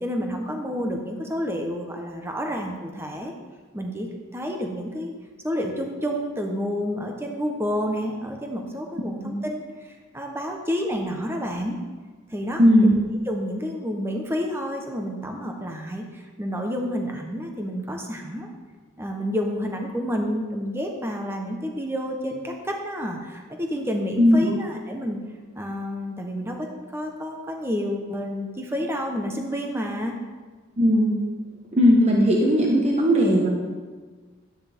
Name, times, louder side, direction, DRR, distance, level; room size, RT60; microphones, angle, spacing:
voice 1, 0.0-3.3 3.7-5.1 5.4-11.8 12.3-13.0 13.3-18.5 19.0-25.2 25.5-30.2, equal, 10° right, 2 dB, 1.0 m, -29 dB
voice 2, 24.2-24.5 30.8-31.1 31.7-33.5, equal, 30° right, -2 dB, 1.3 m, -17 dB
13.0 x 9.7 x 3.6 m, 1.4 s
head